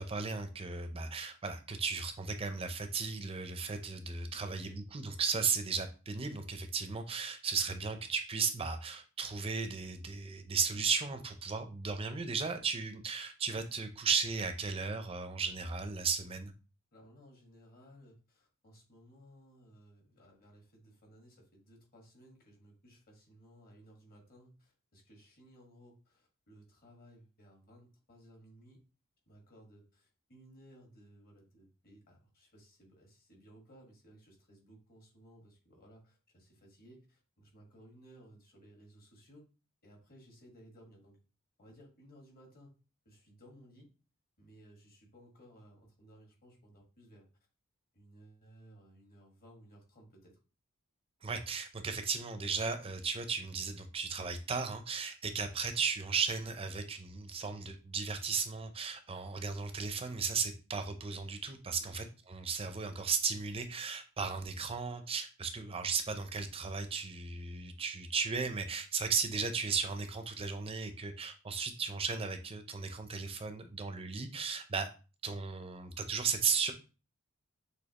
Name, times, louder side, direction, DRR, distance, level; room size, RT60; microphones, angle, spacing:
voice 1, 0.0-16.5 51.2-74.9 75.2-76.7, right 5 dB, 25° right, 8 dB, 0.5 m, -35 dB
voice 2, 4.4-4.8 16.9-28.8 29.3-39.5 39.8-41.2 41.6-42.7 43.0-43.9 44.4-47.3 47.9-50.4 61.8-62.0, equal, 40° left, 0 dB, 1.5 m, -59 dB
6.3 x 2.7 x 2.9 m, 0.33 s
head